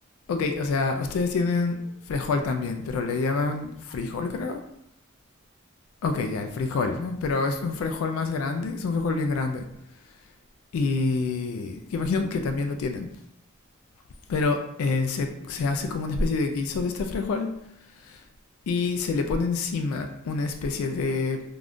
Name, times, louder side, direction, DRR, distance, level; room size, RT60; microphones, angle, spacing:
voice 1, 0.3-4.6 6.0-9.6 10.7-13.1 14.3-17.5 18.0-18.2 18.7-21.4, left 4 dB, 80° left, 5 dB, 0.3 m, -27 dB
3.4 x 2.3 x 2.5 m, 0.76 s
head